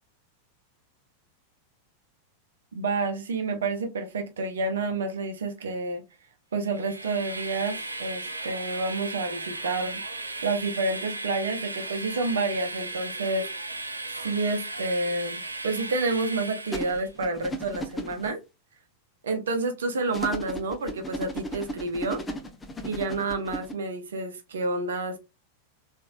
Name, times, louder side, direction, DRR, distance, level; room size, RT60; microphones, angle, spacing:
voice 1, 2.7-6.0 6.5-10.0 10.4-13.5 14.2-18.4 19.2-22.2 22.8-25.2, right 3 dB, 65° right, 0.9 m, -29 dB
Train, 6.6-17.1, right 2 dB, 80° right, 0.4 m, -36 dB
sound 1, 16.7-18.3 20.1-23.7, equal, 15° left, 0.7 m, -35 dB
3.2 x 3.2 x 2.6 m
figure-of-eight pair, 90°, 0 cm